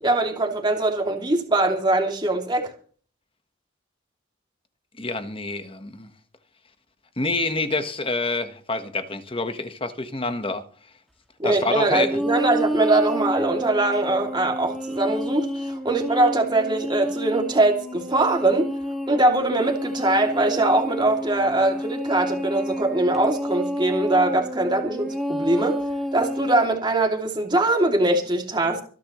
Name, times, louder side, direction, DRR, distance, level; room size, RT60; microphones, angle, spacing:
voice 1, 0.0-2.7 11.4-18.7 19.1-25.8 26.1-28.8, right 2 dB, 20° right, 2.7 m, -22 dB
voice 2, 5.0-6.1 7.2-10.6 11.4-12.2, left 3 dB, 25° left, 1.3 m, -27 dB
sound 1, 11.9-26.7, equal, ahead, 2.0 m, -30 dB
25.5 x 10.5 x 3.1 m
head